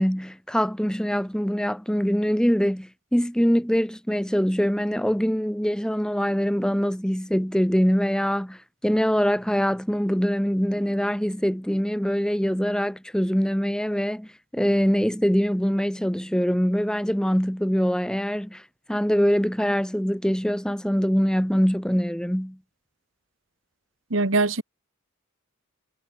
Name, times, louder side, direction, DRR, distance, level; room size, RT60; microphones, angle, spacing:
voice 1, 0.0-18.6 18.9-22.6, equal, 5° left, 1.1 m, -23 dB
voice 2, 24.1-24.6, right 3 dB, 70° right, 1.7 m, -22 dB
head